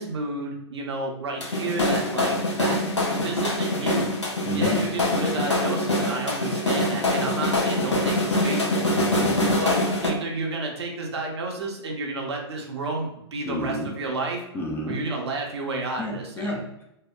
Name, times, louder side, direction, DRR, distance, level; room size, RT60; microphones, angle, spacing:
voice 1, 0.0-2.8 3.1-4.1 4.5-9.1 9.6-14.4 14.9-16.5, right 2 dB, 70° right, 1 dB, 0.6 m, -31 dB
sound 1, 1.4-10.1, left 1 dB, 90° left, 0.6 m, -24 dB
voice 2, 4.4-4.8 9.1-9.6 13.5-13.9 14.5-15.0 16.0-16.8, left 1 dB, 15° left, 0 dB, 0.4 m, -30 dB
2.7 x 2.0 x 2.2 m, 0.84 s
figure-of-eight pair, 110°, 15 cm